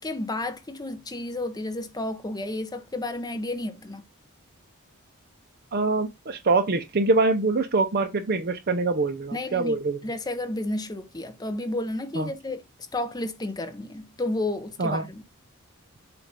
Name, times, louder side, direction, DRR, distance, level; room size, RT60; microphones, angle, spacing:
voice 1, 0.0-4.0 9.3-12.6 12.9-15.2, left 1 dB, 15° left, 0.7 m, -31 dB
voice 2, 5.7-10.0 12.2-12.3 14.8-15.0, right 3 dB, 45° right, 0.6 m, -24 dB
7.3 x 2.5 x 5.2 m
head